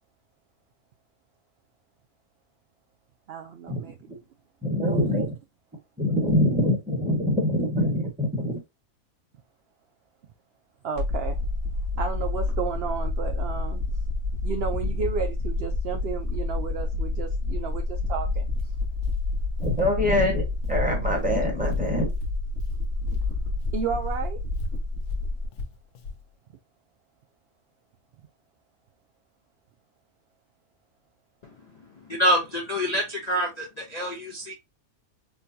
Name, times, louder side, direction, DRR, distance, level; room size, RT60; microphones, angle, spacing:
voice 1, 3.3-4.1 10.8-11.4 12.0-13.8 14.4-18.5 23.7-24.4, right 6 dB, 65° right, 0.6 m, -32 dB
voice 2, 4.6-5.3 6.0-8.6 19.6-22.1, left 1 dB, 5° right, 1.1 m, -24 dB
sound 1, 11.0-25.5, left 2 dB, 50° right, 1.4 m, -28 dB
Walk footsteps, 18.5-23.3 23.6-26.2, left 4 dB, 70° left, 1.0 m, -38 dB
voice 3, 31.4-34.5, equal, 40° left, 0.6 m, -27 dB
4.4 x 2.2 x 2.6 m
omnidirectional pair, 1.5 m